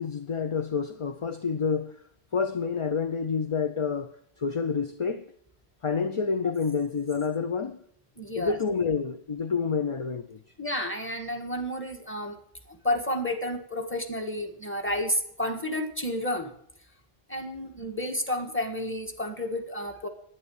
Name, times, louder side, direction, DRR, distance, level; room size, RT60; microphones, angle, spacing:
voice 1, 0.0-2.0 2.3-5.2 5.8-7.8 8.4-10.4, left 5 dB, 40° left, 0.5 m, -28 dB
voice 2, 8.2-8.6 10.6-12.4 12.7-16.5 17.3-20.1, left 1 dB, 10° left, 1.5 m, -31 dB
11.0 x 9.5 x 7.1 m
omnidirectional pair, 1.1 m